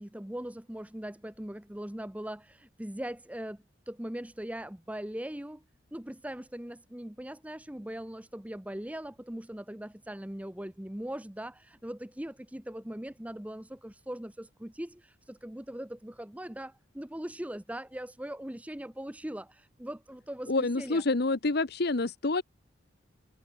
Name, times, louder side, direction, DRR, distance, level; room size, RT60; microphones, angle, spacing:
voice 1, 0.0-5.6 5.9-21.0, right 1 dB, 5° right, 0.8 m, -40 dB
voice 2, 20.5-22.4, left 3 dB, 55° left, 0.9 m, -27 dB
head